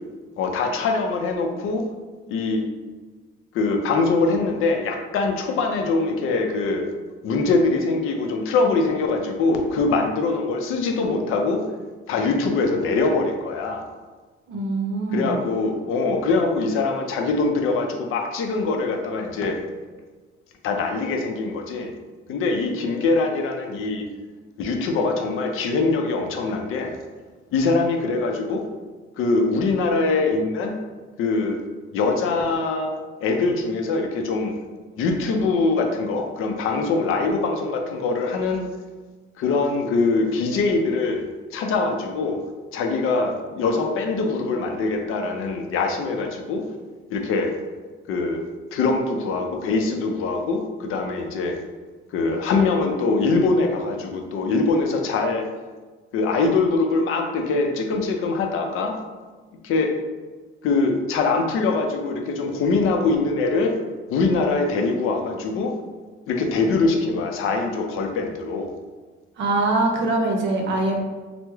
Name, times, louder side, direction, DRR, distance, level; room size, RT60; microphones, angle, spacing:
voice 1, 0.4-1.8 2.3-2.6 3.5-6.9 7.2-11.6 12.1-13.8 15.1-19.6 20.6-21.9 22.3-24.0 24.6-26.9 27.5-28.6 29.2-30.7 31.2-31.6 31.9-32.9 33.2-34.5 35.0-38.7 39.4-41.3 41.5-42.4 42.7-46.6 47.1-47.5 48.1-48.4 48.7-51.6 52.1-55.4 56.1-59.0 59.6-59.9 60.6-63.7 64.1-65.7 66.3-68.7, left 3 dB, 80° left, 3 dB, 0.5 m, -23 dB
voice 2, 14.5-15.4 69.4-71.0, right 2 dB, 60° right, 2 dB, 0.6 m, -23 dB
3.4 x 2.0 x 3.0 m, 1.3 s
cardioid pair, 155°, 21 cm